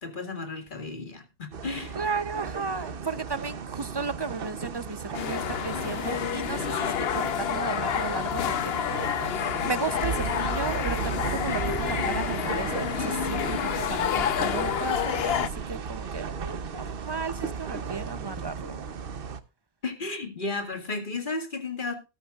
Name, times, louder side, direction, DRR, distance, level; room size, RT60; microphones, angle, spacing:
voice 1, 0.0-2.0 19.8-21.9, left 3 dB, 50° left, 2.3 m, -33 dB
sound 1, 1.5-19.4, right 6 dB, 60° right, 1.0 m, -35 dB
voice 2, 2.0-9.0 9.6-18.8, right 4 dB, 30° right, 0.6 m, -34 dB
sound 2, 5.1-15.5, left 9 dB, 70° left, 1.0 m, -29 dB
13.5 x 13.0 x 2.4 m
omnidirectional pair, 1.1 m